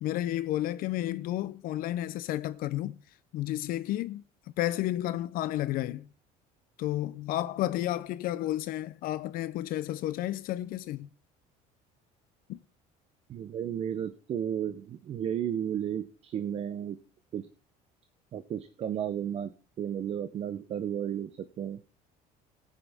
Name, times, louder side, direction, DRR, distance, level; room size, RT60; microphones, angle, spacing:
voice 1, 0.0-3.0 3.3-4.2 4.6-6.1 6.8-11.1 12.5-12.6, left 14 dB, 60° left, 0.6 m, -31 dB
voice 2, 13.3-17.0 17.3-17.5 18.3-21.8, right 9 dB, 40° right, 0.7 m, -33 dB
17.5 x 9.2 x 3.5 m
cardioid pair, 140°, 16 cm